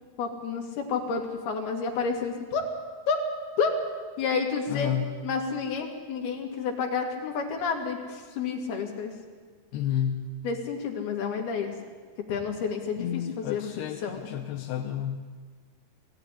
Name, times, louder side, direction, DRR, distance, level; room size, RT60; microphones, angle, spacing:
voice 1, 0.2-2.7 3.1-3.2 3.6-3.8 4.2-4.9 5.2-9.1 10.4-11.7 12.3-14.3, left 5 dB, 75° left, 1 dB, 4.5 m, -30 dB
voice 2, 4.7-5.2 9.7-10.3 13.0-15.2, left 10 dB, 90° left, 3 dB, 3.1 m, -31 dB
21.5 x 16.0 x 10.0 m, 1.5 s
omnidirectional pair, 4.5 m